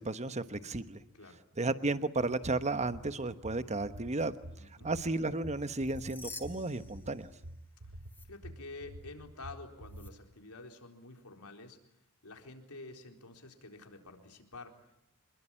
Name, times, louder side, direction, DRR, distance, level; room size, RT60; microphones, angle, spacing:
voice 1, 0.0-1.0 1.6-4.3 4.8-7.3, right 2 dB, 30° right, 11 dB, 1.1 m, -33 dB
sound 1, 2.4-10.1, right 1 dB, 80° right, 1.3 m, -48 dB
voice 2, 4.6-4.9 7.8-7.9 8.2-11.8 12.2-14.9, left 3 dB, 90° left, 4 dB, 4.1 m, -49 dB
sound 2, 5.7-7.7 8.0-8.3 9.9-10.1, left 3 dB, 10° left, 3.6 m, -50 dB
26.5 x 22.0 x 10.0 m, 0.81 s
head